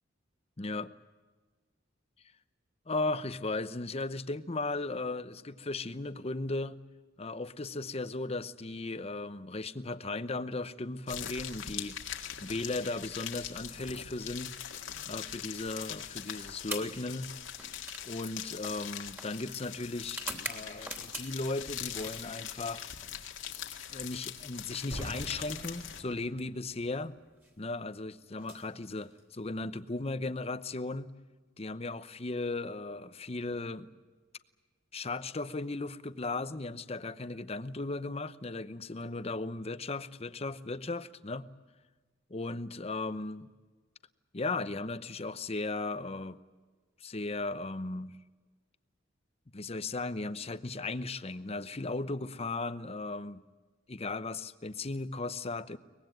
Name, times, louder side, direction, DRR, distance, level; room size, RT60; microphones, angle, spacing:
voice 1, 0.6-0.9 2.9-6.8 7.2-12.0 12.4-14.5 15.1-17.3 17.6-17.8 18.1-22.9 23.9-27.1 27.6-31.1 31.6-33.9 34.9-41.5 42.3-43.5 44.3-46.4 47.0-48.1 49.5-53.4 53.9-55.8, left 2 dB, 30° left, 0.8 m, -36 dB
sound 1, 11.1-26.0, left 9 dB, 80° left, 2.1 m, -42 dB
sound 2, 16.6-21.5 21.9-23.2 24.4-26.2 27.3-27.5 28.3-29.5, right 1 dB, 10° right, 3.1 m, -45 dB
sound 3, 24.9-27.9, right 1 dB, 45° right, 2.2 m, -46 dB
23.5 x 20.5 x 9.2 m
head